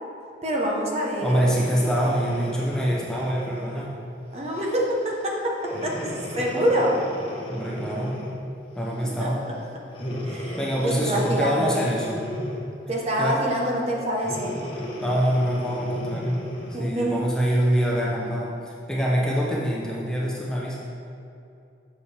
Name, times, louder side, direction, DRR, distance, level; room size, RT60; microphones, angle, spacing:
voice 1, 0.4-1.4 4.3-5.6 5.8-7.0 9.2-9.5 10.2-11.9 12.9-14.5 16.7-17.2, equal, 35° right, -2 dB, 0.9 m, -26 dB
voice 2, 1.2-3.9 7.5-8.2 8.8-9.4 10.6-12.2 13.2-13.5 15.0-16.4 16.7-20.8, equal, 5° left, -5 dB, 0.7 m, -25 dB
Breathing, 1.3-3.9 4.6-4.8 5.6-8.5 9.9-12.8 14.2-16.9 17.5-17.6, equal, 30° left, 1.0 m, -35 dB
7.1 x 6.7 x 3.3 m, 2.6 s
head